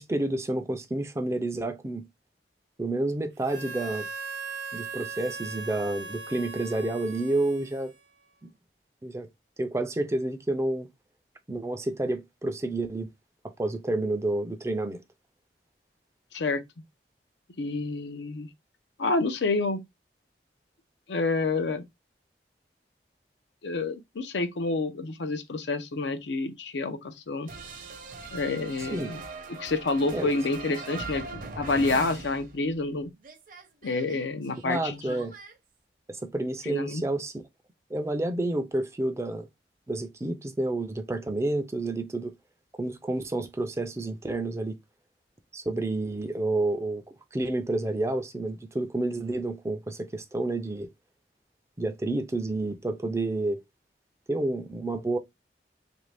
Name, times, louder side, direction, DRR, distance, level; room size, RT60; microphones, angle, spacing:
voice 1, 0.0-2.1 2.8-4.1 4.7-7.9 9.0-9.3 9.6-10.9 11.5-13.1 13.6-15.0 28.9-29.1 30.1-30.3 34.6-35.3 36.1-37.4 37.9-39.5 39.9-42.3 42.8-44.8 45.5-47.0 47.3-50.9 51.8-53.6 54.3-55.2, right 2 dB, 15° right, 0.4 m, -29 dB
Harmonica, 3.4-8.3, right 4 dB, 80° right, 0.7 m, -39 dB
voice 2, 17.6-18.5 19.0-19.8 21.1-21.8 23.6-27.5 28.3-29.2 29.6-33.1 33.8-35.2 36.7-37.0, left 3 dB, 90° left, 0.6 m, -28 dB
sound 1, 27.5-32.9 33.2-35.5, right 3 dB, 50° right, 0.7 m, -41 dB
3.2 x 2.6 x 3.3 m
head